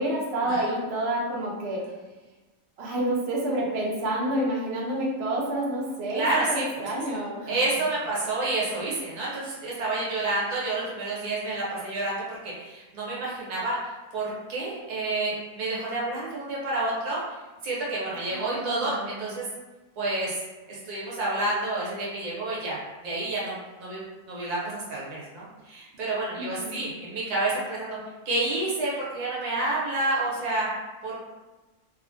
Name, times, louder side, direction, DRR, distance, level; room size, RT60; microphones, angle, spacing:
voice 1, 0.0-1.8 2.8-7.6 18.3-19.3 26.4-26.8, right 1 dB, 60° right, -3 dB, 0.7 m, -29 dB
voice 2, 6.1-6.6 7.5-17.4 17.6-19.4 20.0-20.4 20.7-28.0 28.2-30.7 31.0-31.2, right 2 dB, 75° right, -6 dB, 1.4 m, -29 dB
3.4 x 2.1 x 2.5 m, 1.2 s
omnidirectional pair, 1.7 m